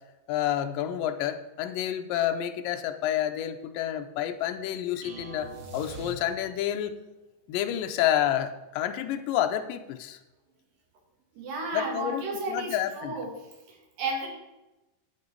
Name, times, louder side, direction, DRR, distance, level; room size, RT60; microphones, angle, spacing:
voice 1, 0.3-7.0 7.5-10.2 11.7-13.2, left 11 dB, 80° left, 7 dB, 2.4 m, -29 dB
sound 1, 5.0-6.7, right 3 dB, 55° right, 2.2 m, -42 dB
voice 2, 11.4-13.3 13.7-14.3, right 2 dB, 75° right, 0 dB, 3.8 m, -33 dB
11.0 x 8.2 x 4.6 m, 1.0 s
omnidirectional pair, 4.0 m